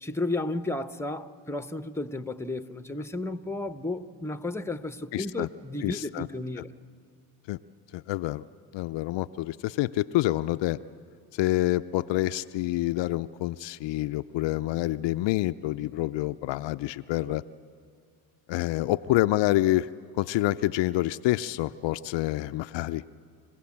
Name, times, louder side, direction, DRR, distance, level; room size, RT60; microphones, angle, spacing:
voice 1, 0.0-6.7, left 2 dB, 5° left, 1.0 m, -33 dB
voice 2, 5.1-5.5 5.8-6.3 7.5-7.6 7.9-8.4 8.7-10.8 11.3-17.4 18.5-19.9 20.2-23.0, left 16 dB, 70° left, 0.6 m, -27 dB
27.0 x 15.5 x 8.7 m
supercardioid pair, 55°, 46 cm